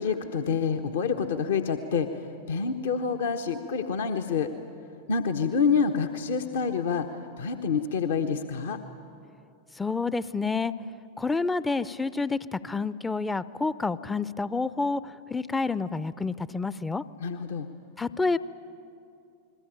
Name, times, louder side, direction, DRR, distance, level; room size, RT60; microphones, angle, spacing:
voice 1, 0.0-2.1 2.5-4.5 5.1-7.1 7.4-8.8 17.2-17.7, left 6 dB, 60° left, 5 dB, 1.2 m, -27 dB
voice 2, 9.8-10.7 11.2-15.0 15.3-17.0 18.0-18.4, left 4 dB, 10° left, 17 dB, 0.6 m, -28 dB
28.0 x 21.0 x 9.0 m, 2.6 s
figure-of-eight pair, 90°, 0 cm